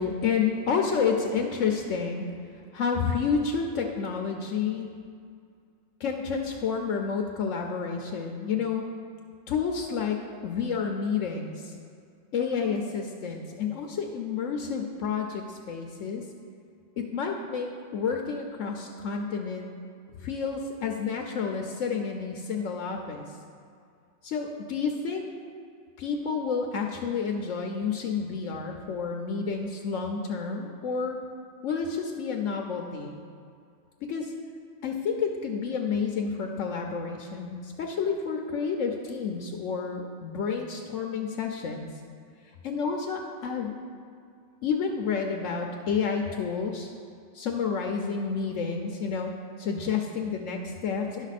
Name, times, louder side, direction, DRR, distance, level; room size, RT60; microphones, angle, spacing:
voice 1, 0.0-2.3 2.7-4.9 6.0-8.8 9.5-11.7 12.3-16.2 17.0-19.7 20.2-23.3 24.2-25.2 26.0-31.2 31.6-33.2 34.1-34.3 34.8-41.9 42.6-43.7 44.6-46.9 47.3-49.3 49.6-51.3, left 5 dB, 70° left, 2 dB, 1.0 m, -30 dB
10.5 x 6.2 x 4.1 m, 2.3 s
omnidirectional pair, 1.4 m